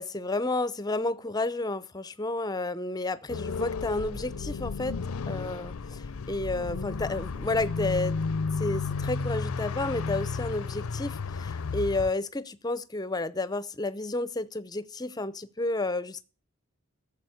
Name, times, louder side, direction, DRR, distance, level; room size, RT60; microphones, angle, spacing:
voice 1, 0.0-5.0 5.3-8.2 8.6-16.2, left 2 dB, 15° left, 0.6 m, -31 dB
sound 1, 3.3-12.1, left 4 dB, 75° left, 0.5 m, -33 dB
13.5 x 7.3 x 7.9 m
head